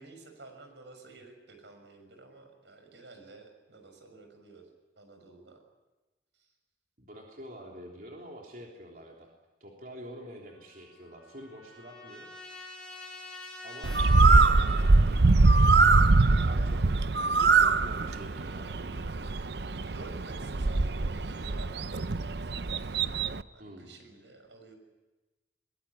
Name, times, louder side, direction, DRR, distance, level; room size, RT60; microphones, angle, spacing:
voice 1, 0.0-4.7 5.0-5.6 6.3-6.5 14.2-14.8 19.9-22.8 23.5-24.8, right 3 dB, 85° right, 5 dB, 6.6 m, -51 dB
voice 2, 7.0-9.3 9.6-12.3 13.6-15.0 16.3-16.9 17.4-19.1 23.6-23.9, equal, 50° right, -1 dB, 3.5 m, -47 dB
Trumpet, 10.5-15.2, left 2 dB, 5° left, 7.3 m, -47 dB
Bird, 13.8-23.4, right 3 dB, 70° right, 0.7 m, -23 dB
22.0 x 21.5 x 10.0 m, 1.1 s
head